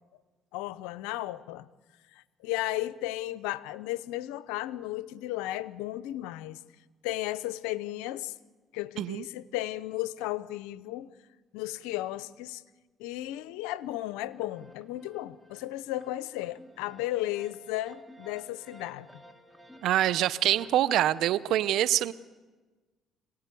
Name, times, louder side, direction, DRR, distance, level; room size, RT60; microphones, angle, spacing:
voice 1, 0.5-1.7 2.1-6.6 7.0-8.3 8.7-11.1 11.5-12.6 13.0-19.1, left 15 dB, 90° left, 18 dB, 0.7 m, -34 dB
sound 1, 14.3-20.7, equal, 5° right, 3.5 m, -54 dB
voice 2, 19.8-22.1, right 13 dB, 75° right, 17 dB, 0.8 m, -25 dB
25.5 x 17.5 x 8.5 m, 1.3 s
supercardioid pair, 75°, 0 cm